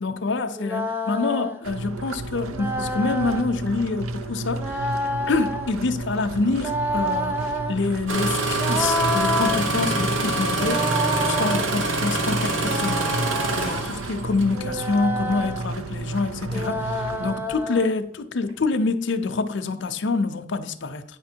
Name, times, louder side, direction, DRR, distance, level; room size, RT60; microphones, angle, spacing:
voice 1, 0.0-4.8 5.3-7.4 7.7-10.9 11.2-13.1 13.6-13.8 14.1-21.0, left 3 dB, 60° left, 0.6 m, -26 dB
sound 1, 0.5-1.6 2.5-3.5 4.5-5.8 6.5-7.8 8.5-9.6 10.5-11.7 12.5-13.9 14.5-15.6 16.5-17.9, equal, 10° right, 0.5 m, -28 dB
sound 2, 1.6-17.3, right 2 dB, 85° right, 0.5 m, -33 dB
Engine starting, 8.1-14.5 15.5-15.8 16.4-16.8 17.4-17.5, right 2 dB, 70° right, 1.1 m, -26 dB
9.0 x 5.1 x 4.5 m
head